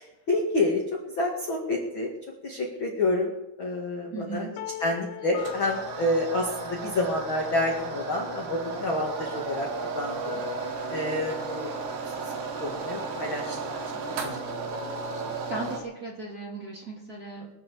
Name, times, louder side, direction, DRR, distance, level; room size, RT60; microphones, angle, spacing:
voice 1, 0.0-2.1 2.4-3.3 3.6-4.5 4.8-9.7 9.9-10.4 10.9-11.7 12.0-12.1 12.6-13.8 14.2-14.4 14.7-14.8, left 2 dB, 50° left, -1 dB, 1.5 m, -28 dB
voice 2, 4.1-4.5 15.5-17.5, right 3 dB, 25° right, -3 dB, 2.7 m, -37 dB
sound 1, 4.6-7.5, left 15 dB, 85° left, 3.1 m, -41 dB
sound 2, 5.4-15.8, right 4 dB, 65° right, 3.6 m, -34 dB
23.0 x 7.9 x 7.0 m, 0.94 s
omnidirectional pair, 5.6 m